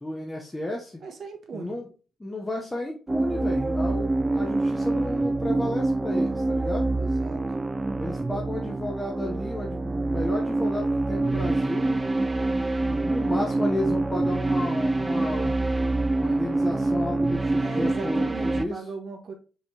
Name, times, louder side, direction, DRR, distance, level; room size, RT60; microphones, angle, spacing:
voice 1, 0.0-1.0 1.5-1.9 2.2-6.8 8.0-12.1 12.8-15.6 16.2-18.8, left 1 dB, 15° left, 0.8 m, -33 dB
voice 2, 1.0-1.8 7.0-7.4 17.5-19.3, right 4 dB, 50° right, 1.3 m, -37 dB
sound 1, 3.1-18.6, right 2 dB, 20° right, 0.3 m, -26 dB
5.3 x 3.3 x 2.8 m
cardioid pair, 90°, 0 cm